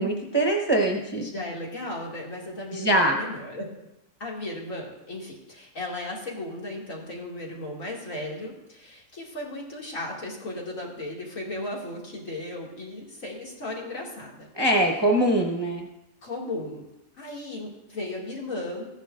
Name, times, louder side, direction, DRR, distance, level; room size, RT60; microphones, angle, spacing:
voice 1, 0.0-1.3 2.7-3.2 14.5-15.9, right 1 dB, 20° right, 0 dB, 0.8 m, -23 dB
voice 2, 1.1-3.6 4.2-14.5 16.2-16.8 17.2-18.9, left 1 dB, 60° left, -3 dB, 2.6 m, -35 dB
14.5 x 10.5 x 2.5 m, 0.89 s
omnidirectional pair, 1.6 m